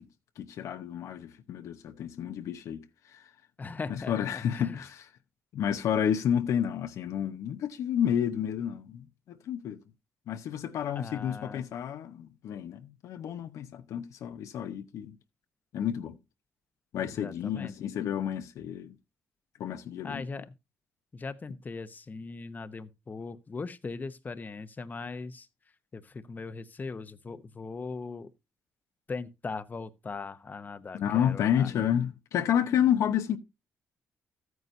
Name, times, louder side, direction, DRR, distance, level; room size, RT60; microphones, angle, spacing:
voice 1, 0.4-2.8 3.1-3.2 3.9-5.1 5.5-9.8 10.3-15.1 15.7-16.2 16.9-18.9 19.6-20.2 30.9-33.4, left 9 dB, 80° left, 0.8 m, -30 dB
voice 2, 3.6-4.8 10.9-11.6 17.0-17.7 20.0-20.5 21.1-25.5 25.9-28.3 29.1-31.7, left 4 dB, 35° left, 0.8 m, -39 dB
13.5 x 9.4 x 2.6 m
cardioid pair, 75°, 5 cm